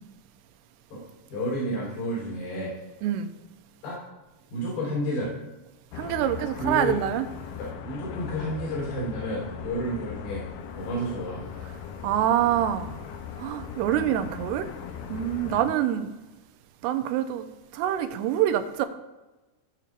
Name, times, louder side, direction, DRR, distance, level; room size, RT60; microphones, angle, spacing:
voice 1, 1.3-2.8 3.8-4.1 4.5-5.3 6.6-7.0 7.6-10.5 10.7-11.4 15.4-15.6, equal, 70° left, -5 dB, 5.5 m, -31 dB
sound 1, 5.9-15.6, left 8 dB, 85° left, 2.0 m, -39 dB
voice 2, 6.0-7.3 12.0-13.0 13.4-14.7 15.1-16.1 16.8-17.5 17.7-18.9, right 11 dB, 80° right, 9 dB, 2.6 m, -25 dB
16.5 x 6.6 x 2.5 m, 1.1 s
omnidirectional pair, 4.9 m